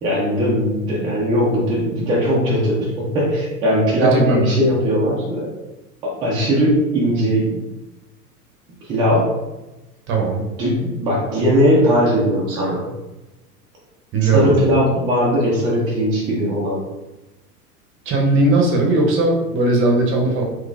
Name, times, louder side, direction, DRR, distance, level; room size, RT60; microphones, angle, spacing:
voice 1, 0.0-5.5 6.0-7.6 8.8-9.3 10.6-12.9 14.2-16.8, equal, 10° right, -5 dB, 0.3 m, -19 dB
voice 2, 4.0-4.5 10.1-10.4 14.1-14.5 18.1-20.4, right 2 dB, 25° right, 0 dB, 0.7 m, -18 dB
3.7 x 3.0 x 2.4 m, 1.1 s
figure-of-eight pair, 85°, 46 cm